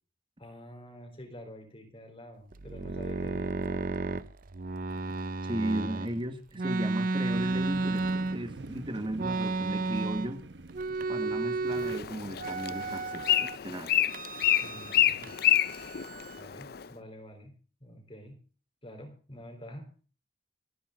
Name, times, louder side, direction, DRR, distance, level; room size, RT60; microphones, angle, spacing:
voice 1, 0.4-4.3 14.6-15.4 16.1-17.5 17.8-18.4 18.8-20.1, left 1 dB, 30° left, 3.9 m, -48 dB
sound 1, 2.5-6.1 6.6-8.7 9.2-10.4 10.7-12.0 12.4-13.6 14.1-15.0 15.2-16.4, right 3 dB, 50° right, 0.6 m, -33 dB
voice 2, 5.4-10.4 11.1-14.0, right 1 dB, 30° right, 1.6 m, -36 dB
sound 2, 7.3-13.0, right 2 dB, 70° right, 1.0 m, -46 dB
Bird, 11.7-16.9, left 12 dB, 55° left, 0.6 m, -28 dB
27.5 x 9.4 x 3.8 m
head